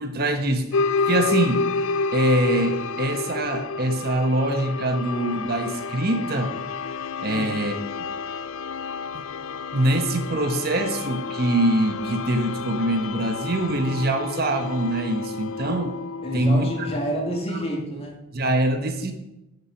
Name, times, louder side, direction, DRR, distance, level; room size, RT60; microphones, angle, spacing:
voice 1, 0.0-1.7 2.1-6.5 7.2-8.0 9.1-9.3 9.7-16.0 16.3-16.7 18.3-19.1, right 1 dB, 45° right, 6 dB, 1.1 m, -24 dB
sound 1, 0.7-17.8, left 4 dB, 75° left, 0.4 m, -30 dB
voice 2, 16.2-18.2, right 1 dB, 30° left, 0 dB, 2.3 m, -29 dB
11.0 x 6.6 x 5.9 m, 0.94 s
head